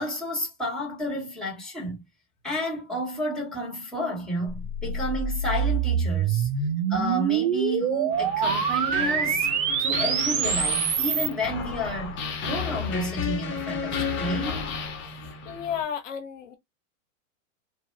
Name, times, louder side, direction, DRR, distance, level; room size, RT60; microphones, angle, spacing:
voice 1, 0.0-2.0 2.4-6.5 6.9-9.5 9.8-14.7, equal, ahead, 1.6 m, -31 dB
sound 1, 4.5-11.3, right 7 dB, 20° right, 0.3 m, -25 dB
sound 2, 8.1-15.8, left 6 dB, 30° left, 1.1 m, -33 dB
voice 2, 15.4-16.6, left 8 dB, 70° left, 0.9 m, -32 dB
2.8 x 2.4 x 3.1 m
hypercardioid pair, 115°, 40 cm